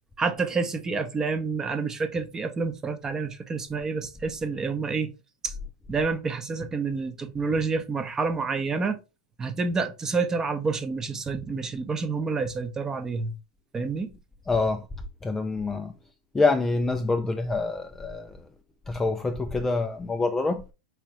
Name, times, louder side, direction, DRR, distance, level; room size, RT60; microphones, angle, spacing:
voice 1, 0.2-5.1 5.4-5.5 5.9-9.0 9.4-13.3 13.7-14.1, right 4 dB, 15° right, 0.7 m, -28 dB
voice 2, 14.5-14.8 15.2-15.9 16.3-18.4 18.9-20.6, left 3 dB, 10° left, 0.3 m, -26 dB
4.6 x 3.3 x 3.0 m
supercardioid pair, 135°, 3 cm